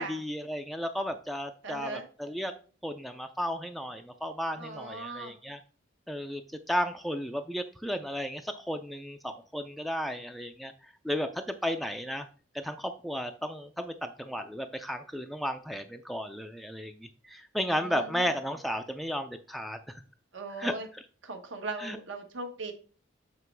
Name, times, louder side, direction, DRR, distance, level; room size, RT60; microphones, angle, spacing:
voice 1, 0.0-2.5 2.8-5.6 6.1-6.4 6.7-10.7 11.0-12.3 12.5-20.0 20.6-20.7 21.8-22.0, equal, ahead, 6 dB, 0.4 m, -34 dB
voice 2, 1.6-2.0 4.6-5.3 17.7-18.2 20.3-20.9 21.2-22.7, right 3 dB, 70° right, 5 dB, 1.1 m, -38 dB
7.6 x 3.0 x 4.6 m, 0.39 s
head